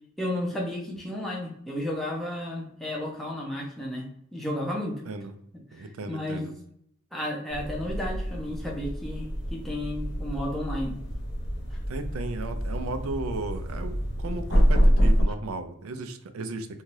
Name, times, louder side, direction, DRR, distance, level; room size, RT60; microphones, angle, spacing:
voice 1, 0.2-5.0 5.5-6.5 7.1-11.0 11.7-11.8, left 1 dB, ahead, -3 dB, 0.6 m, -33 dB
voice 2, 5.7-6.5 11.9-16.7, right 3 dB, 80° right, 8 dB, 0.4 m, -35 dB
sound 1, 7.5-15.2, equal, 50° left, 0.7 m, -26 dB
2.7 x 2.3 x 3.1 m, 0.74 s
head